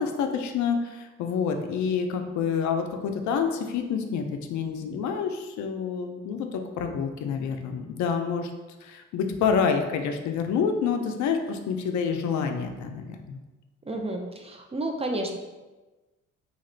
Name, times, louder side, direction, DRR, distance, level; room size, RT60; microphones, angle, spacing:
voice 1, 0.0-8.5 8.8-13.4, left 6 dB, 70° left, 5 dB, 0.4 m, -28 dB
voice 2, 13.9-15.4, right 1 dB, 20° right, 2 dB, 0.3 m, -31 dB
3.0 x 2.9 x 2.4 m, 1.2 s
cardioid pair, 90°, 30 cm